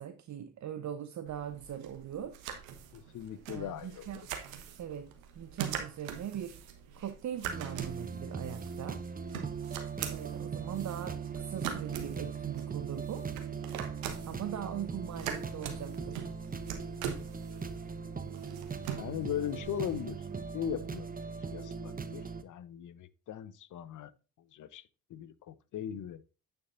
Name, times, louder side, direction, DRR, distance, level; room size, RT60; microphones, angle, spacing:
voice 1, 0.0-2.4 3.5-4.3 4.8-6.6 7.0-9.0 10.1-13.3 14.2-16.3, right 10 dB, 45° right, 0.9 m, -40 dB
sound 1, 1.3-20.9, right 8 dB, 85° right, 1.3 m, -43 dB
voice 2, 2.9-4.3 19.0-20.2 20.5-21.1 21.5-24.1 24.4-24.8 25.1-26.2, left 10 dB, 50° left, 0.9 m, -39 dB
sound 2, 7.4-22.4, right 5 dB, 20° right, 1.0 m, -40 dB
8.7 x 7.0 x 2.6 m
hypercardioid pair, 50°, 39 cm